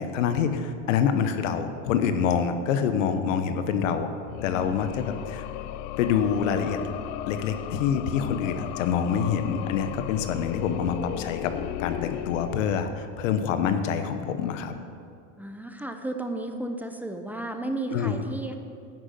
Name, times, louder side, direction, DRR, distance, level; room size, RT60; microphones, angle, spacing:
voice 1, 0.0-4.1 4.4-5.5 6.0-6.8 7.2-11.5 11.8-14.7 17.9-18.2, left 7 dB, 85° left, 9 dB, 1.0 m, -26 dB
sound 1, 4.2-13.3, left 13 dB, 65° left, 0.5 m, -36 dB
voice 2, 15.4-18.6, right 2 dB, 5° right, 5 dB, 0.7 m, -33 dB
10.5 x 6.4 x 7.8 m, 2.4 s
supercardioid pair, 115°, 37 cm